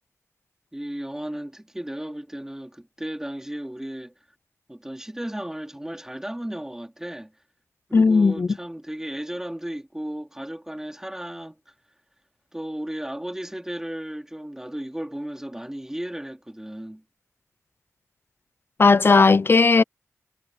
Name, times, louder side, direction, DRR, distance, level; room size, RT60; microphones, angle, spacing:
voice 1, 0.7-4.1 4.7-7.3 7.9-11.6 12.5-17.0, right 1 dB, 10° right, 3.4 m, -34 dB
voice 2, 7.9-8.5 18.8-19.8, left 4 dB, 40° left, 0.6 m, -16 dB
wide cardioid pair, 70°, 6 cm